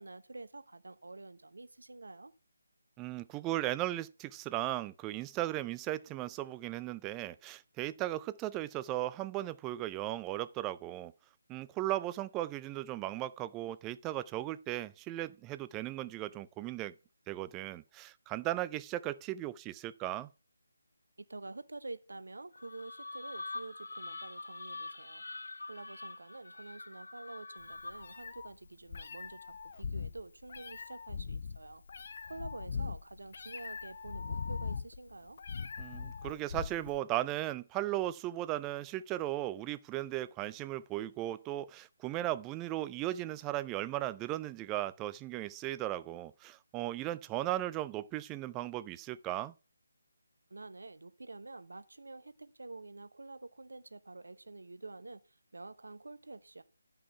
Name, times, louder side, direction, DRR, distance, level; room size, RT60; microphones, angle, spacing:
voice 1, 0.0-2.3 21.2-25.2 25.7-31.8 32.2-35.4 50.5-56.6, right 2 dB, 75° right, 0.9 m, -48 dB
voice 2, 3.0-11.1 11.5-16.9 17.3-20.3 35.8-49.5, right 15 dB, 15° right, 0.4 m, -36 dB
sound 1, 22.5-28.2, left 2 dB, 70° left, 1.0 m, -45 dB
Meow, 27.6-37.0, left 5 dB, 50° left, 0.7 m, -41 dB
11.0 x 5.5 x 5.6 m
figure-of-eight pair, 150°, 0 cm